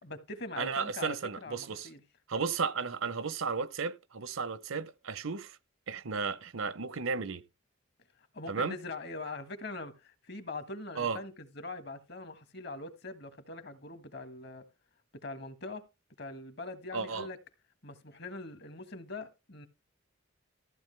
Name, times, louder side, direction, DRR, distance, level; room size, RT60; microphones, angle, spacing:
voice 1, 0.0-2.0 8.3-14.6 15.2-15.8 16.2-17.4 17.8-19.7, left 3 dB, 50° left, 1.5 m, -42 dB
voice 2, 0.6-1.9 2.3-5.6 5.9-7.4 8.5-8.8 11.0-11.2 16.9-17.3, right 5 dB, 75° right, 0.8 m, -34 dB
14.5 x 8.1 x 3.4 m
head